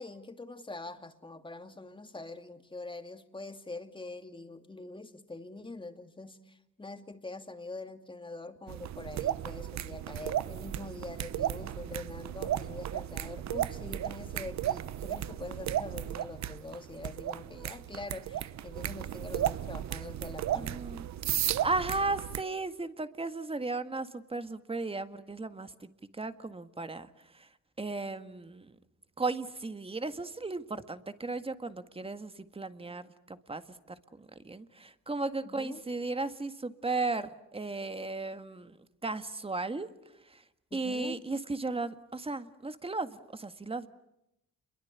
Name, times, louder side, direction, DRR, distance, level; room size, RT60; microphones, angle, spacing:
voice 1, 0.0-20.7 35.4-35.8 40.7-41.2, left 2 dB, 15° left, 7 dB, 2.5 m, -44 dB
sound 1, 8.7-22.4, right 11 dB, 65° right, 1.0 m, -35 dB
voice 2, 20.6-21.1 21.4-25.9 26.2-27.5 27.8-28.7 29.2-33.6 33.9-38.8 39.0-39.9 40.3-40.4 40.7-43.9, right 3 dB, 20° right, 10 dB, 1.8 m, -35 dB
29.5 x 23.0 x 8.4 m, 0.86 s
cardioid pair, 90°, 30 cm